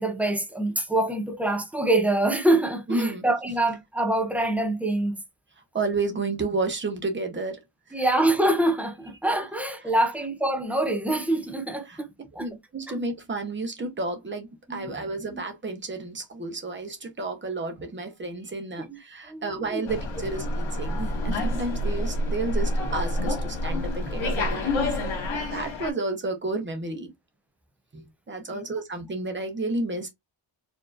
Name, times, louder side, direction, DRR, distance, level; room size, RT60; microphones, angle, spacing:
voice 1, 0.0-5.2 7.9-12.1 12.3-12.5 14.7-15.0 15.3-15.4 18.9-19.0 19.3-19.9 28.5-28.6, right 1 dB, 5° right, 0.6 m, -25 dB
voice 2, 2.9-3.2 5.7-7.6 11.9-12.0 12.4-25.0 25.5-27.1 27.9-30.1, right 3 dB, 25° right, 1.0 m, -31 dB
Slam, 19.9-25.9, left 1 dB, 75° left, 1.8 m, -28 dB
4.6 x 2.9 x 2.4 m
wide cardioid pair, 150°, 47 cm